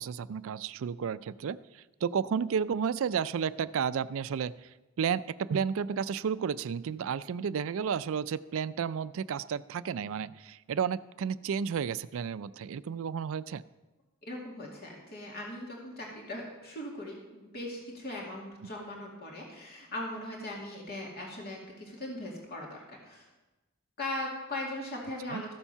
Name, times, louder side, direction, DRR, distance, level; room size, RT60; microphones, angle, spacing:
voice 1, 0.0-1.6 2.0-4.5 5.0-13.6 25.3-25.4, right 7 dB, 70° right, 16 dB, 0.4 m, -32 dB
voice 2, 14.3-23.3 24.0-25.5, left 1 dB, 50° left, -1 dB, 2.3 m, -39 dB
14.0 x 7.2 x 5.6 m, 1.1 s
head